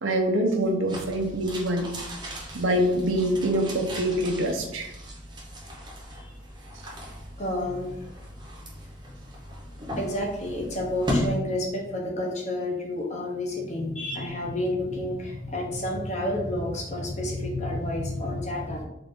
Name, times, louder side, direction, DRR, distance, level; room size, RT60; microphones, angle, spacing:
voice 1, 0.0-1.9 2.5-4.9, right 1 dB, 90° right, 3 dB, 0.7 m, -25 dB
sound 1, 0.9-11.3, left 1 dB, 25° right, 0.8 m, -36 dB
voice 2, 7.4-7.9 10.0-18.8, left 1 dB, 35° left, 0 dB, 0.8 m, -30 dB
3.8 x 2.5 x 3.6 m, 0.85 s
head